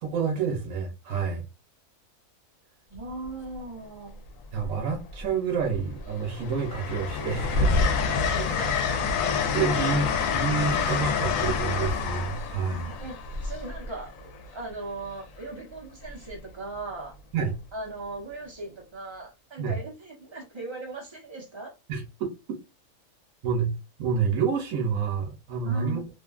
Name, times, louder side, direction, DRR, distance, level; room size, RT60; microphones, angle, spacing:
voice 1, 0.0-1.4 4.5-7.9 8.4-8.7 9.5-12.9 17.3-17.5 19.6-19.8 21.9-22.3 23.4-26.0, right 6 dB, 80° right, 1.1 m, -28 dB
Train, 2.9-3.3 4.6-5.3 5.7-14.5 16.1-16.3, left 5 dB, 80° left, 1.0 m, -27 dB
voice 2, 2.9-4.2 8.1-9.1 12.7-13.2 13.4-17.1 17.7-21.7 25.6-26.1, right 2 dB, 25° right, 0.8 m, -39 dB
2.6 x 2.5 x 2.3 m
omnidirectional pair, 1.4 m